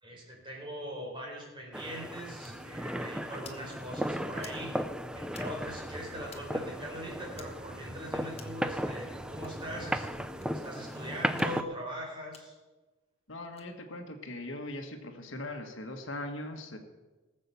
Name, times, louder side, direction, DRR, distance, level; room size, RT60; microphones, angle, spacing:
voice 1, 0.0-4.8 5.1-10.1 10.6-12.5, equal, 25° right, -2 dB, 4.4 m, -41 dB
sound 1, 1.7-11.6, equal, 5° right, 0.5 m, -36 dB
sound 2, 2.4-2.5 3.3-3.6 4.4-4.6 5.3-5.5 6.3-6.4 7.3-7.5 8.3-8.6 9.3-9.5 10.4-10.5 11.3-11.5 12.3-12.4 13.4-13.7, left 6 dB, 30° left, 1.3 m, -51 dB
sound 3, 2.5-10.5, equal, 60° right, 4.2 m, -48 dB
voice 2, 13.3-16.8, left 1 dB, 70° left, 5 dB, 1.6 m, -40 dB
19.5 x 7.6 x 6.9 m, 1.2 s
head